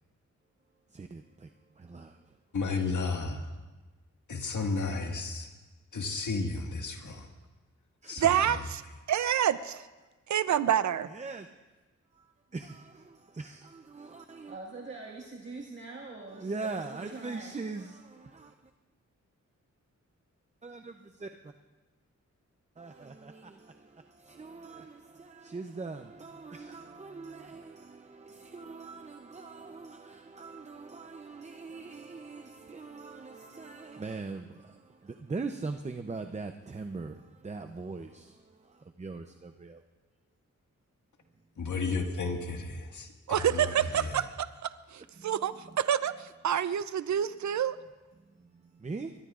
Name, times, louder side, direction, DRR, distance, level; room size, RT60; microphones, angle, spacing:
voice 1, 0.9-1.5 1.8-2.4 8.0-8.4 11.1-11.5 12.1-14.6 16.3-18.7 20.6-21.5 22.8-39.8 41.6-41.7 45.2-45.8 48.4-49.1, right 3 dB, 25° right, 0.6 m, -42 dB
voice 2, 2.5-3.5 4.3-5.5 5.9-7.3 8.1-8.5 41.6-44.2, left 4 dB, 75° left, 1.8 m, -33 dB
voice 3, 8.2-8.8 9.1-9.8 10.3-11.1 43.3-47.8, right 10 dB, 70° right, 0.6 m, -28 dB
voice 4, 14.5-17.6, right 3 dB, 40° right, 1.8 m, -44 dB
24.0 x 22.0 x 2.5 m
wide cardioid pair, 105°, 30 cm